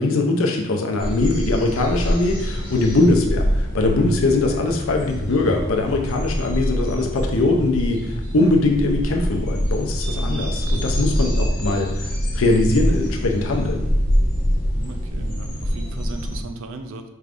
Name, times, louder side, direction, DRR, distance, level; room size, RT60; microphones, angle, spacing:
voice 1, 0.0-13.9, left 2 dB, 70° left, 2 dB, 0.6 m, -21 dB
sound 1, 1.0-16.4, equal, 40° left, 1.1 m, -25 dB
voice 2, 10.2-10.6 14.8-17.0, right 3 dB, 70° right, 7 dB, 0.4 m, -37 dB
4.4 x 3.5 x 2.5 m, 0.93 s
head